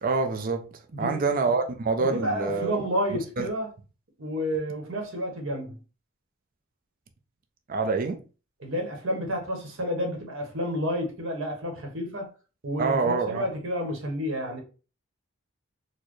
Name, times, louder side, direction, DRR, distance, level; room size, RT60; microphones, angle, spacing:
voice 1, 0.0-2.7 3.1-3.5 7.7-8.2 12.8-13.5, right 4 dB, 40° right, 0.4 m, -26 dB
voice 2, 0.9-1.4 2.0-3.7 4.2-5.8 8.6-12.3 12.6-14.6, equal, 65° right, 1.1 m, -30 dB
4.2 x 2.1 x 3.1 m
head